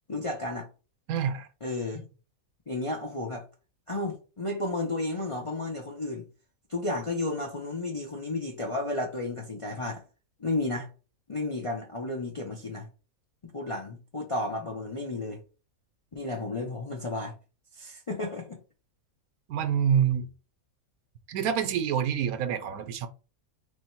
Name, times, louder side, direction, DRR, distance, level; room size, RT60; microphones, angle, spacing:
voice 1, 0.1-0.7 1.6-2.0 2.7-3.4 3.9-6.2 6.7-10.0 10.4-10.9 11.3-12.9 13.4-15.4 16.1-17.3 17.7-18.6, left 2 dB, 45° left, 0.4 m, -32 dB
voice 2, 1.1-1.5 19.5-20.3 21.3-23.1, right 8 dB, 85° right, 1.1 m, -26 dB
3.1 x 2.7 x 4.4 m
omnidirectional pair, 1.5 m